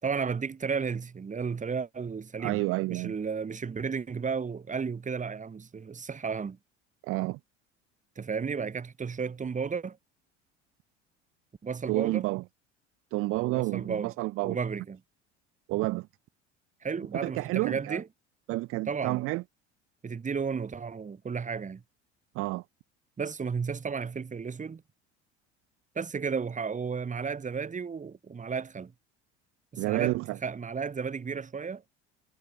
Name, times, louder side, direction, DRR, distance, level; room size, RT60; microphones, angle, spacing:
voice 1, 0.0-2.6 2.9-6.6 8.2-10.0 11.6-12.3 13.4-14.1 14.4-15.0 16.8-18.1 18.9-19.3 20.0-21.8 23.2-24.8 25.9-28.9 29.7-31.8, right 5 dB, 20° right, 2.6 m, -33 dB
voice 2, 2.4-3.1 7.0-7.4 11.9-12.4 13.1-14.6 15.7-16.1 17.2-18.0 18.5-19.4 22.3-22.6 29.8-30.4, right 20 dB, 40° right, 0.6 m, -29 dB
figure-of-eight pair, 65°, 35 cm